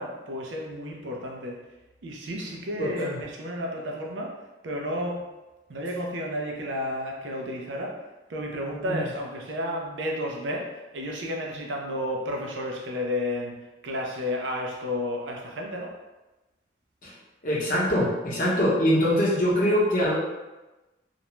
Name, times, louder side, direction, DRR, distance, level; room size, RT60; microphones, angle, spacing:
voice 1, 0.0-1.6 2.0-5.2 5.7-8.0 8.3-16.0, left 1 dB, 90° right, 0 dB, 0.5 m, -32 dB
voice 2, 2.8-3.2 8.9-9.0 17.0-17.1 17.4-20.2, equal, 45° left, -6 dB, 0.7 m, -23 dB
2.4 x 2.1 x 3.0 m, 1.1 s
head